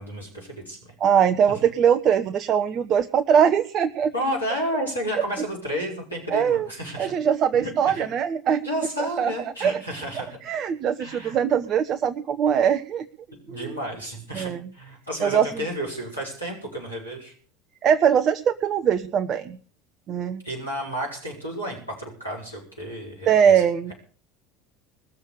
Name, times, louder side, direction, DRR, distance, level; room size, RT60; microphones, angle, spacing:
voice 1, 0.0-0.9 4.1-7.1 7.5-8.1 8.6-10.4 11.0-11.4 13.5-17.3 20.4-23.6, equal, 90° left, -2 dB, 5.8 m, -31 dB
voice 2, 1.0-4.1 6.3-6.7 7.0-8.6 9.0-9.8 10.4-13.0 14.3-14.7 15.2-15.6 17.8-19.6 20.1-20.4 23.3-23.9, right 8 dB, 40° right, 9 dB, 0.9 m, -21 dB
20.5 x 7.4 x 8.3 m, 0.43 s
figure-of-eight pair, 70°, 0 cm